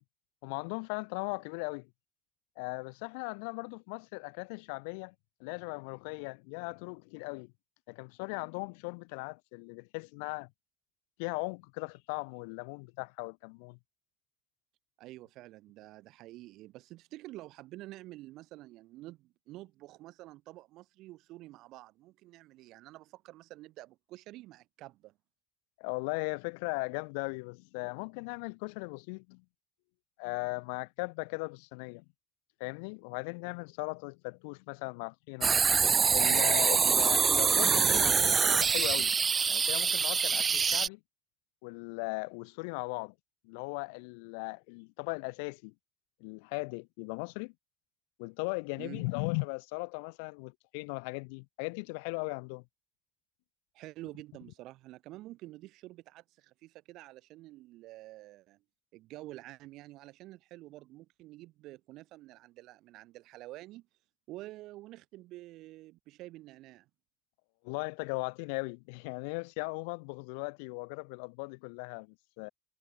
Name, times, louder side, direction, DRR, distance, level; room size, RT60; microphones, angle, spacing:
voice 1, 0.4-1.9 2.6-5.1 5.4-7.5 7.9-10.5 11.2-13.8 25.8-29.4 30.2-32.0 32.6-35.6 36.1-39.1 39.5-41.0 41.6-43.1 43.4-45.7 46.2-47.5 48.2-52.6 67.6-72.5, left 34 dB, 90° left, 3.0 m, -38 dB
voice 2, 15.0-25.1 48.8-49.0 53.7-58.6 58.9-63.9 64.3-66.9, right 17 dB, 75° right, 7.5 m, -49 dB
sound 1, 35.4-40.9, right 6 dB, 40° right, 0.8 m, -25 dB
supercardioid pair, 65°, 0 cm